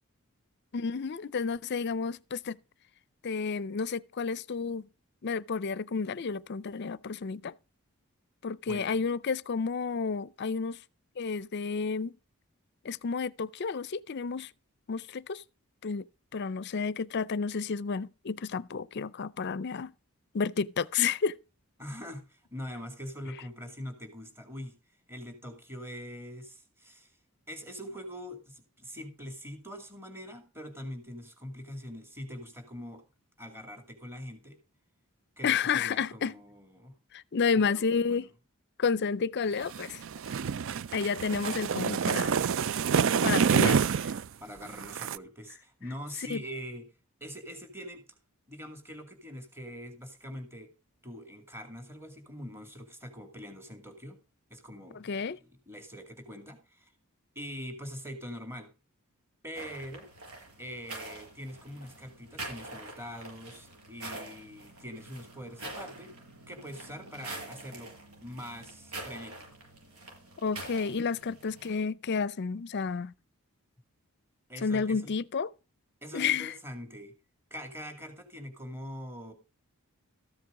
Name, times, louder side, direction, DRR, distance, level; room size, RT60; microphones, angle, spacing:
voice 1, 0.7-2.6 3.2-4.8 5.2-7.5 8.4-10.8 11.2-12.1 12.8-14.5 14.9-15.4 15.8-16.1 16.3-19.9 20.3-21.4 35.4-36.3 37.1-38.3 38.8-40.0 40.9-42.3 43.2-43.8 46.3-46.4 55.0-55.4 70.4-73.1 74.6-75.5 76.1-76.5, left 5 dB, 50° left, 0.5 m, -31 dB
voice 2, 8.7-9.0 21.8-24.8 25.1-27.1 27.5-33.0 33.4-34.6 35.4-36.9 37.5-38.3 44.4-46.9 47.2-48.0 48.5-50.7 51.0-54.2 54.5-56.9 57.4-58.7 59.4-60.1 60.6-66.1 66.5-67.9 68.2-69.5 74.5-75.1 76.0-77.1 77.5-79.3, equal, 10° right, 2.2 m, -43 dB
sound 1, 39.7-44.2 44.7-45.2, right 6 dB, 60° right, 0.4 m, -27 dB
sound 2, 59.5-71.8, right 2 dB, 85° right, 6.7 m, -45 dB
14.0 x 7.7 x 3.7 m
head